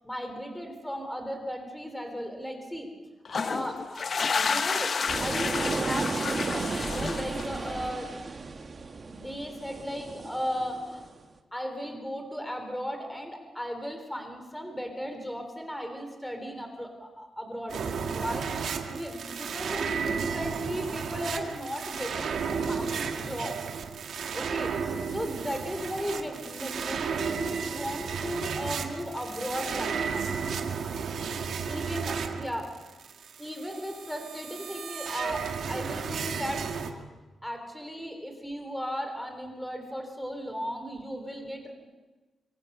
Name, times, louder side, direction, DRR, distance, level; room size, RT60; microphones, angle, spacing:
voice 1, 0.0-2.9 3.4-8.1 9.1-11.0 11.5-18.5 18.9-23.7 24.3-30.3 31.7-32.7 33.4-37.0 37.4-41.7, equal, 5° left, 5 dB, 3.5 m, -36 dB
sound 1, 3.2-7.8, left 5 dB, 45° left, 0.6 m, -30 dB
sound 2, 5.1-11.2, right 4 dB, 35° right, 1.7 m, -34 dB
sound 3, 17.7-36.9, right 6 dB, 70° right, 2.0 m, -33 dB
24.5 x 24.5 x 5.6 m, 1.2 s
wide cardioid pair, 145°, 0 cm